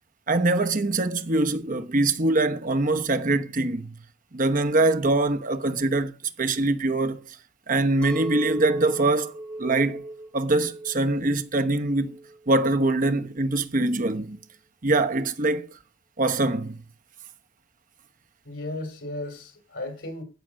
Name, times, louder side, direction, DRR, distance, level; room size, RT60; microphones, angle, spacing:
voice 1, 0.3-3.9 4.3-6.1 6.4-7.4 7.7-9.3 9.6-10.0 10.3-12.2 12.5-14.4 14.8-15.8 16.2-16.8, right 2 dB, 45° right, 1.0 m, -23 dB
Chink clink, 8.0-13.2, right 2 dB, 5° left, 4.1 m, -36 dB
voice 2, 18.4-20.2, left 2 dB, 70° left, 4.2 m, -35 dB
15.5 x 5.9 x 6.3 m
head